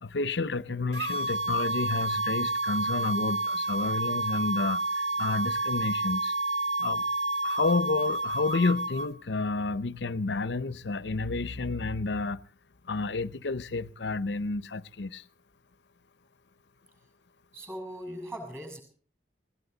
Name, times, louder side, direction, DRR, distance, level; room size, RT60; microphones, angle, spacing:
voice 1, 0.0-6.4 6.8-7.0 7.4-12.4 12.9-15.2, left 3 dB, 85° left, 0.8 m, -30 dB
sound 1, 0.9-9.1, right 2 dB, 80° right, 1.6 m, -29 dB
voice 2, 17.5-18.8, equal, 15° right, 6.5 m, -39 dB
19.5 x 18.5 x 4.0 m
head